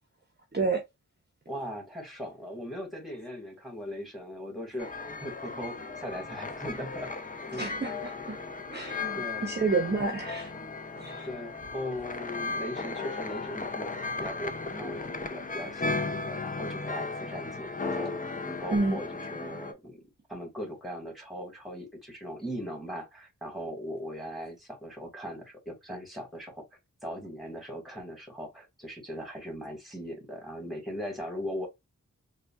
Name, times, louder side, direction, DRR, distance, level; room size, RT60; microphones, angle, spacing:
voice 1, 1.5-7.1 7.5-7.7 9.1-9.6 11.0-20.0 20.3-26.6 27.0-31.7, equal, ahead, 1.7 m, -39 dB
sound 1, 4.8-19.7, left 3 dB, 25° left, 0.5 m, -36 dB
voice 2, 7.6-8.4 8.7-10.5 11.0-11.3 18.7-19.0, right 3 dB, 30° right, 0.7 m, -29 dB
sound 2, 7.7-16.3, left 4 dB, 50° left, 1.7 m, -52 dB
3.6 x 2.2 x 2.3 m
wide cardioid pair, 70°, 33 cm